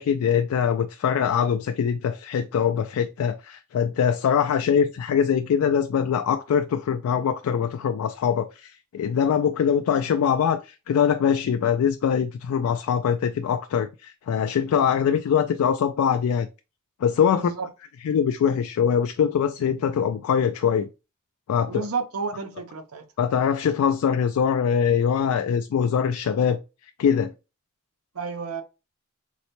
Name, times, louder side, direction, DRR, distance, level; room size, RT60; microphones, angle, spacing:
voice 1, 0.0-16.5 17.0-17.5 18.0-20.9 21.5-21.7 23.2-26.6 27.0-27.3, left 7 dB, 85° left, 0.3 m, -23 dB
voice 2, 17.3-17.7 21.7-23.0 28.1-28.6, right 5 dB, 90° right, 0.6 m, -31 dB
3.9 x 2.1 x 2.9 m
head